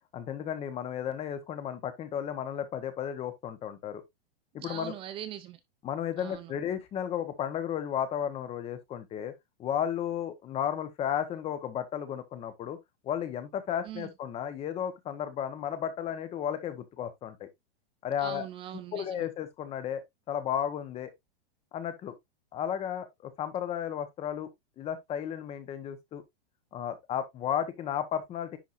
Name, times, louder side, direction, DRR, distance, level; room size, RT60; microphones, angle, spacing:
voice 1, 0.1-4.0 4.5-4.9 5.8-9.3 9.6-12.8 13.0-17.5 18.0-18.5 18.9-20.0 20.3-21.1 21.7-22.1 22.5-24.5 24.8-26.2 26.7-28.6, left 9 dB, 20° left, 1.1 m, -33 dB
voice 2, 4.6-5.6 6.2-6.5 13.8-14.1 18.2-19.2, right 11 dB, 15° right, 0.5 m, -41 dB
10.0 x 4.6 x 2.6 m
supercardioid pair, 155°, 31 cm